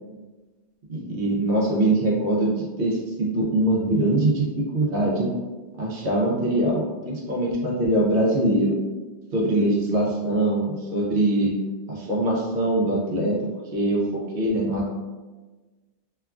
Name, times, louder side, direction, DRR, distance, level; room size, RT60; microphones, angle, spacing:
voice 1, 0.9-5.3 5.8-8.8 9.3-11.5 11.9-13.4 13.7-14.0 14.3-14.9, right 1 dB, 60° right, -3 dB, 0.7 m, -23 dB
3.0 x 2.3 x 2.3 m, 1.3 s
omnidirectional pair, 1.2 m